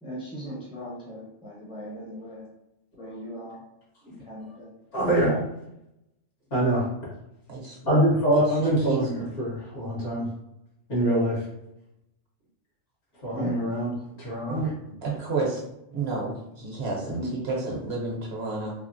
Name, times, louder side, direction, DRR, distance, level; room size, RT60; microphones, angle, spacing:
voice 1, 0.0-2.5 2.9-3.6 4.2-4.7 13.3-13.6 17.2-17.4, equal, 5° right, -6 dB, 0.6 m, -38 dB
voice 2, 4.9-5.4 6.5-6.9 7.9-10.2 10.9-11.4 13.2-14.7, right 1 dB, 65° left, -7 dB, 1.7 m, -24 dB
voice 3, 8.3-9.0 14.5-14.7 15.0-15.6 15.9-18.7, right 3 dB, 55° right, -3 dB, 0.9 m, -30 dB
3.4 x 2.1 x 2.5 m, 0.85 s
omnidirectional pair, 1.3 m